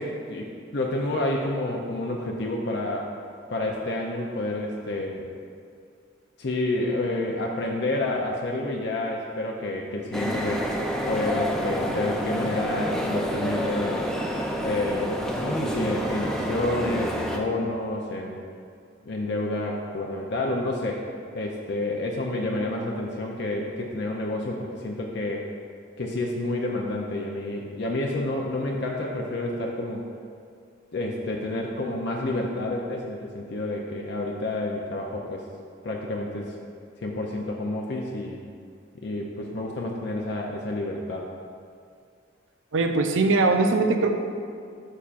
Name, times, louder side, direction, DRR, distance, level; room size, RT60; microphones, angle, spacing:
voice 1, 0.0-3.1 3.5-5.3 6.4-10.7 11.1-14.1 14.6-18.4 19.0-21.1 21.3-25.5 26.0-30.1 30.9-35.5 35.8-36.5 37.0-38.4 39.0-41.3, left 2 dB, 60° left, -1 dB, 0.6 m, -29 dB
sound 1, 10.1-17.4, equal, 5° left, 0.5 m, -28 dB
voice 2, 42.7-44.1, right 3 dB, 90° right, 5 dB, 0.6 m, -21 dB
11.5 x 5.5 x 2.5 m, 2.3 s
head